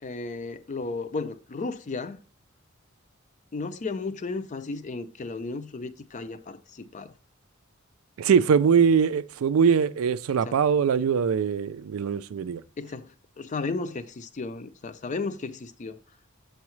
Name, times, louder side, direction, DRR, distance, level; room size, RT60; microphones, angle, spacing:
voice 1, 0.0-2.2 3.5-7.1 10.5-10.6 12.8-16.0, left 3 dB, 35° left, 0.4 m, -34 dB
voice 2, 8.2-12.6, right 6 dB, 85° right, 0.4 m, -22 dB
7.0 x 4.7 x 3.1 m
head